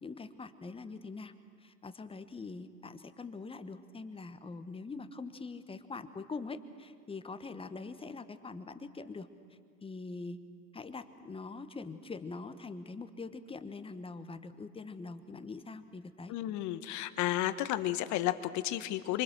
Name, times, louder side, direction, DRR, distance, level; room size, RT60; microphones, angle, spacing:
voice 1, 0.0-1.3 1.6-9.3 9.8-10.4 10.7-16.3, left 3 dB, 10° left, 10 dB, 1.2 m, -43 dB
voice 2, 16.3-19.2, left 14 dB, 35° left, 12 dB, 1.4 m, -32 dB
26.5 x 25.5 x 6.5 m, 2.2 s
figure-of-eight pair, 90°, 47 cm